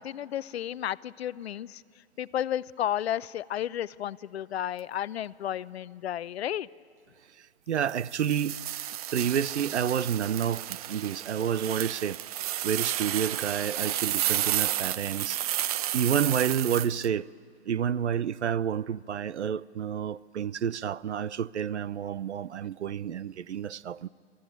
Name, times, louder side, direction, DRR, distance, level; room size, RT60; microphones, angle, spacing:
voice 1, 0.0-1.8 2.2-6.7, left 11 dB, 70° left, 0.6 m, -32 dB
voice 2, 7.7-8.6 9.1-12.2 12.6-17.3 17.7-24.1, right 8 dB, 90° right, 0.7 m, -29 dB
sound 1, 7.9-17.1, right 12 dB, 35° right, 0.5 m, -32 dB
29.5 x 14.5 x 9.2 m
hypercardioid pair, 135°, 33 cm